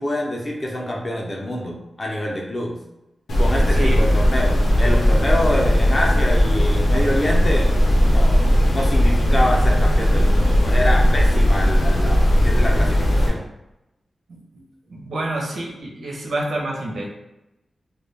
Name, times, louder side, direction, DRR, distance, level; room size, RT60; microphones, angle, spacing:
voice 1, 0.0-2.8 3.4-7.7 8.1-13.4, left 1 dB, 30° left, -1 dB, 0.4 m, -26 dB
sound 1, 3.3-13.3, equal, 80° left, 0.6 m, -17 dB
voice 2, 3.7-4.0 14.3-14.4 14.9-17.1, right 1 dB, 75° right, -1 dB, 0.6 m, -28 dB
2.2 x 2.1 x 3.2 m, 0.92 s
wide cardioid pair, 155°, 0 cm